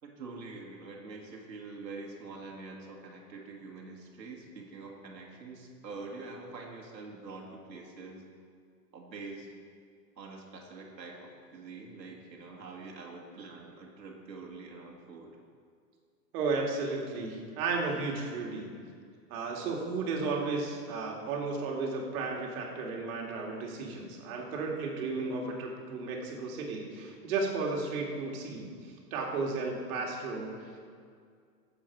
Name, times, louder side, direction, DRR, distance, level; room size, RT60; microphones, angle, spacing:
voice 1, 0.0-8.2 8.9-9.5 10.2-15.3, right 3 dB, 85° right, -1 dB, 2.2 m, -45 dB
voice 2, 16.3-18.7 19.3-30.8, right 3 dB, 55° right, 0 dB, 2.6 m, -34 dB
16.0 x 7.5 x 4.8 m, 2.2 s
hypercardioid pair, 115°, 49 cm